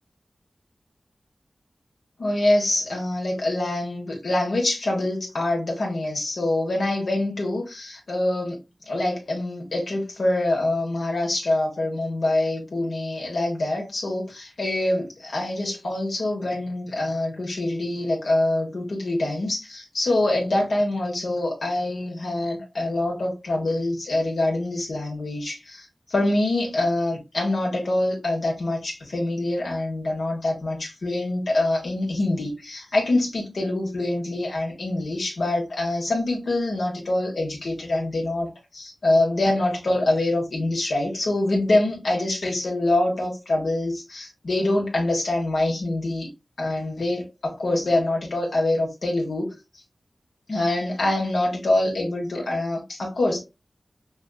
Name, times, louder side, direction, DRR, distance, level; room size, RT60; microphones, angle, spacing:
voice 1, 2.2-8.6 8.9-46.3 46.6-49.5 50.5-53.4, left 2 dB, 80° left, 1.4 m, -25 dB
6.0 x 2.5 x 2.4 m
cardioid pair, 50°, 0 cm